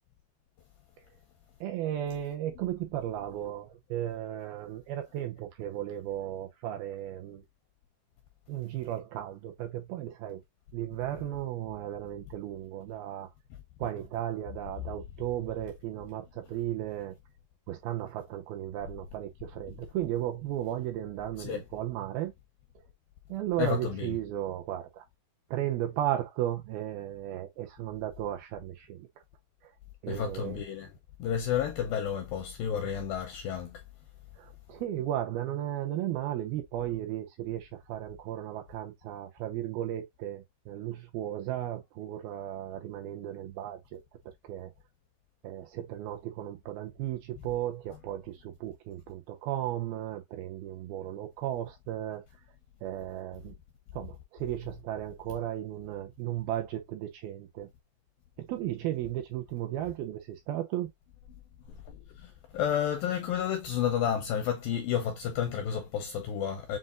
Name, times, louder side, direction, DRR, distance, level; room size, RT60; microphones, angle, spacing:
voice 1, 1.6-7.4 8.5-10.4 10.7-13.3 13.8-17.1 17.7-22.3 23.3-25.0 25.5-29.1 29.6-29.7 30.0-30.6 34.4-44.0 44.4-44.7 45.4-52.2 52.8-53.5 53.9-57.7 58.4-60.9, right 12 dB, 80° right, 2.4 m, -35 dB
voice 2, 23.6-24.2 30.1-30.9 31.2-33.8 61.9-66.8, left 8 dB, 85° left, 2.0 m, -31 dB
7.6 x 2.6 x 2.4 m
omnidirectional pair, 4.9 m